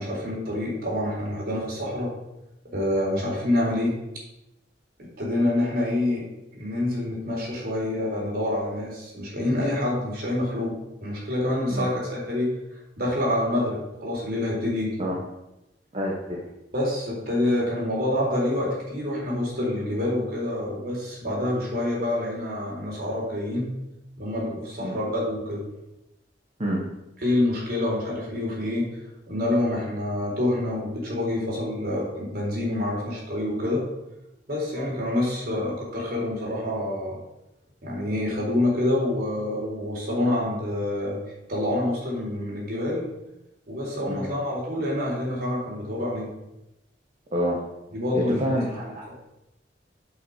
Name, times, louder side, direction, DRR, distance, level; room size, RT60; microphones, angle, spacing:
voice 1, 0.0-2.1 2.7-4.0 5.0-12.6 13.0-14.9 16.7-23.7 24.2-25.6 27.2-28.9 29.3-33.8 34.5-37.2 37.8-41.2 41.5-43.0 43.7-46.3 47.9-48.4, left 1 dB, 60° right, -3 dB, 4.1 m, -27 dB
voice 2, 15.9-16.4 24.8-24.9 26.6-26.8 44.1-44.3 47.3-47.6 48.1-49.1, equal, 40° right, -2 dB, 1.3 m, -27 dB
8.3 x 6.0 x 6.5 m, 0.94 s
head